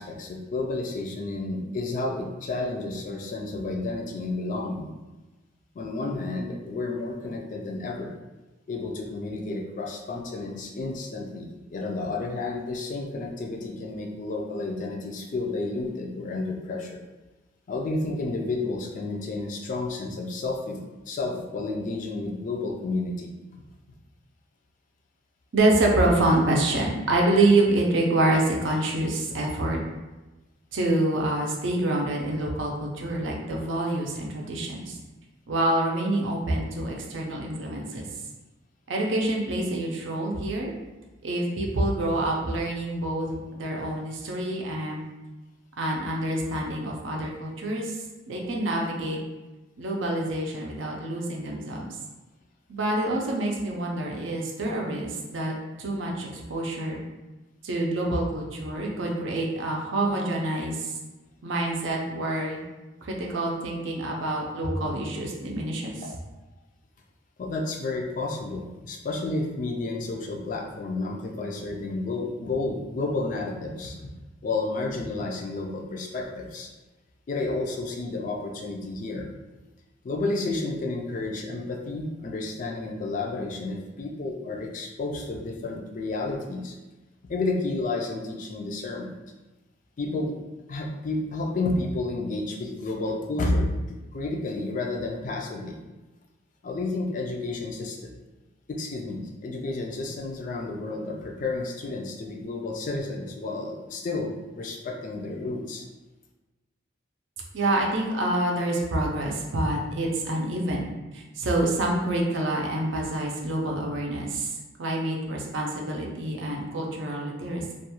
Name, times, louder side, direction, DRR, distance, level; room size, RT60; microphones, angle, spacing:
voice 1, 0.0-4.9 5.8-8.1 8.7-17.0 17.7-20.8 21.1-23.3 66.0-66.2 67.4-74.1 74.4-76.7 77.3-79.3 80.0-86.8 87.3-89.1 90.0-90.3 90.7-95.8 96.6-98.1 98.7-105.8, left 2 dB, 40° left, 1 dB, 0.3 m, -31 dB
voice 2, 25.5-29.8 30.7-35.0 35.5-38.0 38.9-40.7 41.2-45.0 45.8-48.0 48.3-49.2 49.8-51.9 52.7-55.5 55.8-57.0 57.6-60.9 61.4-62.6 63.0-66.1 107.5-117.7, right 1 dB, 75° right, -1 dB, 0.5 m, -27 dB
2.4 x 2.2 x 2.9 m, 1.1 s
head